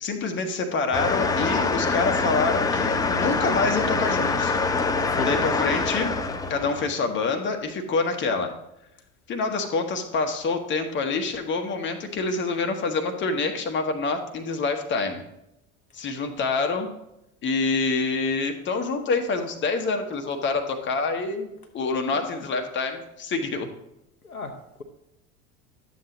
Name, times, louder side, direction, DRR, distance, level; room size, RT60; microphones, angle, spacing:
voice 1, 0.0-4.6 5.2-6.1 6.5-8.5 9.3-15.2 15.9-16.9 17.4-21.5 21.7-23.7, left 4 dB, 25° left, 6 dB, 1.1 m, -26 dB
sound 1, 0.9-6.9, left 4 dB, 10° left, 0.4 m, -25 dB
voice 2, 22.1-22.5 24.2-24.8, left 3 dB, 85° left, 5 dB, 0.9 m, -35 dB
11.0 x 7.5 x 3.0 m, 0.86 s
figure-of-eight pair, 70°, 42 cm